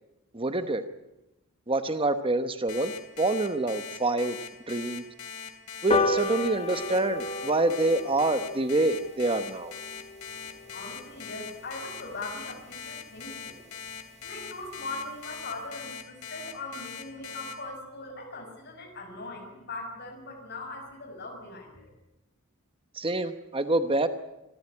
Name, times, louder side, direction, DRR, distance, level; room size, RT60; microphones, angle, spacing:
voice 1, 0.3-0.8 1.7-4.4 4.7-5.0 5.8-9.7 22.9-24.1, right 2 dB, 25° right, 10 dB, 0.9 m, -26 dB
Alarm, 2.7-17.5, left 7 dB, 85° left, 3.1 m, -41 dB
sound 1, 5.9-12.6 13.1-13.2 13.5-13.6 13.9-14.0 14.3-14.4 14.6-14.9 15.3-15.4, left 3 dB, 30° left, 1.8 m, -34 dB
voice 2, 10.7-13.6 14.2-21.9, left 2 dB, 50° left, 3 dB, 6.4 m, -40 dB
25.0 x 14.0 x 9.7 m, 0.96 s
head